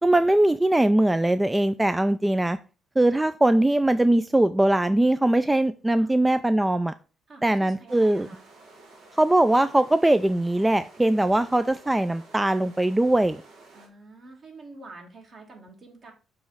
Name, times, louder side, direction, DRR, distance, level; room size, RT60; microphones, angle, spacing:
voice 1, 0.0-2.6 3.0-6.9 7.4-8.3 9.1-13.4, right 1 dB, 10° right, 11 dB, 0.3 m, -21 dB
voice 2, 7.3-8.4 13.7-16.1, right 3 dB, 50° right, 2 dB, 2.2 m, -47 dB
sound 1, 7.9-13.9, right 2 dB, 85° right, 2.3 m, -51 dB
6.9 x 3.1 x 5.5 m, 0.34 s
cardioid pair, 90°, 0 cm